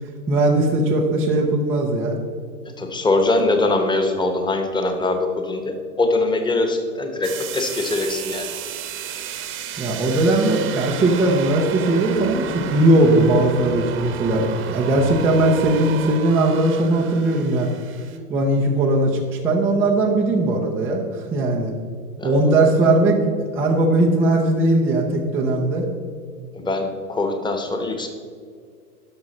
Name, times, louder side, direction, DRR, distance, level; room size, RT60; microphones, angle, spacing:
voice 1, 0.3-2.2 9.8-17.7 18.3-19.2 19.4-21.7 22.2-23.2 23.5-25.9, right 2 dB, 5° right, -3 dB, 0.3 m, -19 dB
voice 2, 2.8-8.5 22.2-22.3 26.5-28.1, left 2 dB, 10° left, 5 dB, 1.0 m, -22 dB
sound 1, 7.2-18.2, right 8 dB, 25° right, 0.9 m, -32 dB
11.5 x 6.1 x 4.1 m, 2.1 s
hypercardioid pair, 110°, 46 cm